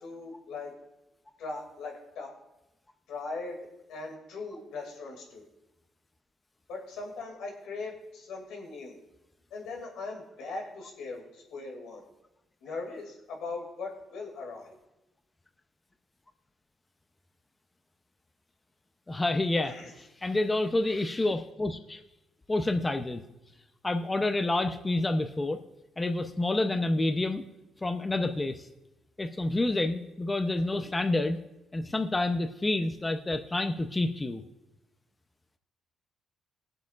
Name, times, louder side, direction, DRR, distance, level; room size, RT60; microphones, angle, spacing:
voice 1, 0.0-0.7 1.4-2.3 3.1-3.6 3.9-5.4 6.7-9.0 9.5-12.0 12.6-14.8 19.6-19.9, left 3 dB, 85° left, 0 dB, 2.4 m, -39 dB
voice 2, 19.1-19.7 20.2-22.0 22.5-23.2 23.8-25.6 26.0-27.4 27.8-28.7 29.2-31.4 31.7-34.4, left 2 dB, 20° left, 6 dB, 0.6 m, -28 dB
21.5 x 7.8 x 2.5 m, 0.96 s
cardioid pair, 90°, 0 cm